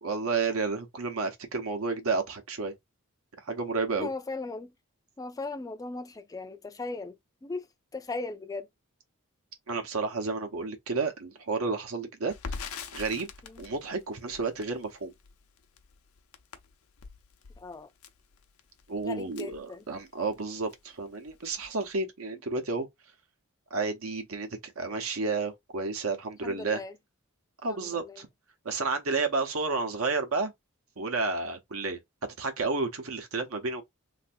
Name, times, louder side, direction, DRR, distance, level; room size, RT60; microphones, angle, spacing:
voice 1, 0.0-2.7 3.4-4.1 9.7-12.7 12.9-13.3 13.6-15.1 18.9-22.9 23.7-26.8 27.6-28.3 28.6-30.5 31.0-32.0 32.4-33.8, right 4 dB, 80° right, 0.9 m, -31 dB
voice 2, 4.0-4.7 5.2-7.7 7.9-8.7 13.4-13.6 17.6-17.9 19.0-19.8 26.4-26.9 27.7-28.2, left 3 dB, 15° left, 0.3 m, -38 dB
Crackle, 12.3-20.4 20.7-20.8 21.1-21.9, left 5 dB, 80° left, 0.6 m, -44 dB
3.3 x 2.6 x 2.6 m
head